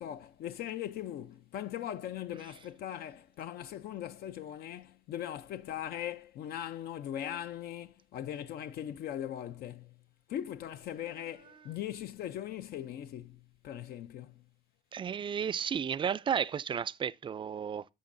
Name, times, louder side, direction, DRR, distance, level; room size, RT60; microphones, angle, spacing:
voice 1, 0.0-10.0 10.3-14.4, left 11 dB, 65° left, 0.6 m, -40 dB
voice 2, 14.9-17.8, right 7 dB, 30° right, 0.4 m, -33 dB
11.5 x 7.5 x 2.6 m
cardioid pair, 110°, 17 cm